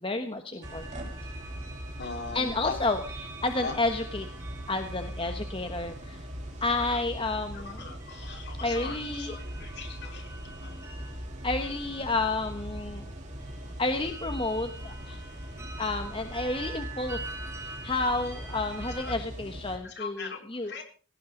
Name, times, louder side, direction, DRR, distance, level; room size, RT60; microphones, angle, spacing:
voice 1, 0.0-1.1 2.3-4.3 4.7-6.3 6.6-7.8 8.6-9.4 11.4-13.1 13.8-15.2 15.8-17.2 17.6-20.7, left 2 dB, 25° left, 6 dB, 1.2 m, -31 dB
sound 1, 0.6-19.1, right 2 dB, 15° right, 3.5 m, -46 dB
sound 2, 0.6-19.8, equal, 35° right, 4.1 m, -40 dB
voice 2, 2.0-2.8 3.6-3.7 6.6-7.0 7.5-10.3 10.6-10.7 19.0-19.1 19.8-20.4 20.6-20.8, left 4 dB, 50° left, 3 dB, 4.4 m, -40 dB
20.0 x 17.5 x 3.9 m, 0.41 s
head